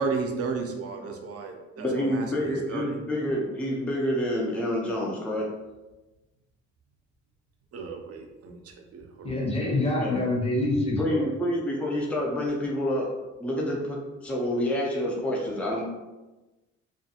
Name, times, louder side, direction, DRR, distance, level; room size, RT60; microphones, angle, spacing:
voice 1, 0.0-3.0 7.7-9.3, right 4 dB, 50° right, 2 dB, 0.5 m, -33 dB
voice 2, 1.8-5.5 10.0-10.3 11.0-13.1 13.4-14.0 14.2-15.8, left 1 dB, 5° left, -3 dB, 0.5 m, -28 dB
voice 3, 9.2-11.3, left 2 dB, 20° left, -2 dB, 0.8 m, -26 dB
2.4 x 2.2 x 2.7 m, 1.1 s
cardioid pair, 90°, 30 cm